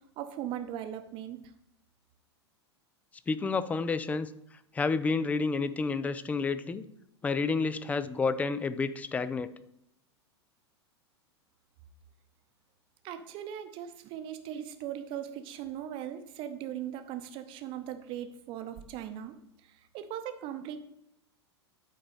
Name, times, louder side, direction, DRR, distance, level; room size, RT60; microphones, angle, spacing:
voice 1, 0.2-1.4 13.0-19.3 19.7-20.8, right 10 dB, 35° right, 8 dB, 0.8 m, -39 dB
voice 2, 3.3-4.3 4.7-6.8 7.2-9.5, left 4 dB, 10° left, 14 dB, 0.3 m, -30 dB
8.4 x 4.0 x 5.4 m, 0.79 s
figure-of-eight pair, 90°, 14 cm